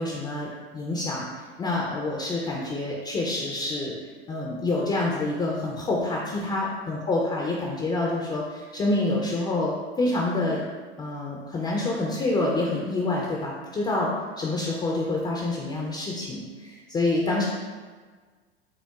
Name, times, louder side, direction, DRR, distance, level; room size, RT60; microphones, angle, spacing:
voice 1, 0.0-4.0 4.3-10.6 11.0-14.1 14.4-17.4, left 2 dB, 15° left, -3 dB, 0.4 m, -27 dB
5.6 x 2.0 x 2.3 m, 1.4 s
hypercardioid pair, 90°, 33 cm